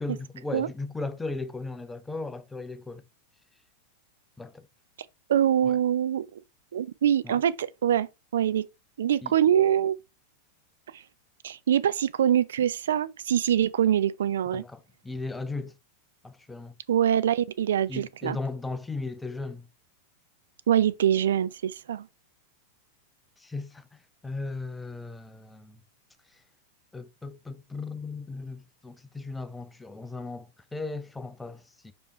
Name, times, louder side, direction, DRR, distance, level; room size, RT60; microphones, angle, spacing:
voice 1, 0.0-3.0 4.4-4.7 5.6-5.8 7.2-7.4 9.2-9.3 14.5-15.7 16.2-16.8 17.9-19.7 23.4-25.8 26.3-26.4 26.9-31.9, left 3 dB, 10° left, 0.7 m, -37 dB
voice 2, 5.3-6.4 6.7-8.1 8.3-8.6 9.0-10.0 10.9-11.0 11.4-14.6 16.9-18.4 20.7-22.1, right 10 dB, 60° right, 0.5 m, -24 dB
5.4 x 5.3 x 4.5 m
figure-of-eight pair, 90°, 0 cm